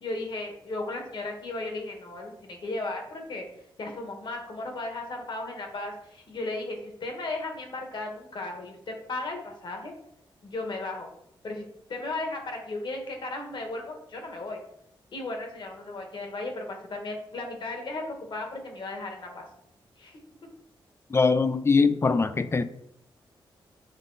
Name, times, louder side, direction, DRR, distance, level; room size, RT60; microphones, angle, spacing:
voice 1, 0.0-3.4 3.8-9.9 10.4-11.1 11.4-14.6 15.1-19.5 20.0-20.2, left 2 dB, 60° left, 1.6 m, -35 dB
voice 2, 21.1-22.6, left 4 dB, 30° left, 0.5 m, -22 dB
7.4 x 3.7 x 4.0 m
cardioid pair, 95°, 9 cm